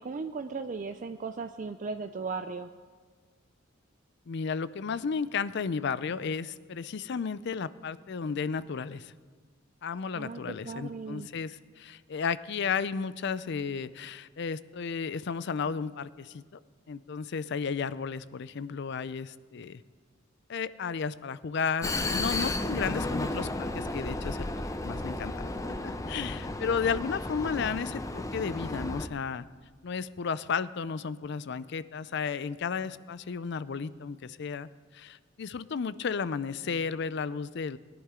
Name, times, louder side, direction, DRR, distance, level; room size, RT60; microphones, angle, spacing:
voice 1, 0.0-2.7 10.1-11.3, right 4 dB, 40° right, 8 dB, 0.4 m, -37 dB
voice 2, 4.3-9.1 9.8-16.6 16.9-19.8 20.5-24.5 24.8-25.3 25.8-29.5 29.8-37.8, left 5 dB, 60° left, 16 dB, 0.4 m, -33 dB
Vehicle, 21.8-29.1, left 2 dB, 15° left, 0.6 m, -33 dB
20.5 x 11.0 x 3.7 m, 1.5 s
head